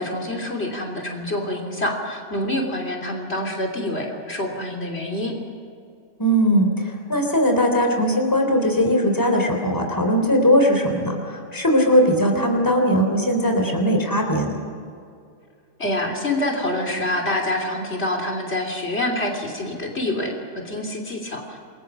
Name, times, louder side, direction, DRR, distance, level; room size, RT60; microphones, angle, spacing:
voice 1, 0.0-5.3 15.8-21.6, left 1 dB, 50° left, 0 dB, 3.4 m, -26 dB
voice 2, 6.2-14.5, equal, 15° left, 3 dB, 3.3 m, -19 dB
29.0 x 21.5 x 6.2 m, 2.4 s
omnidirectional pair, 1.4 m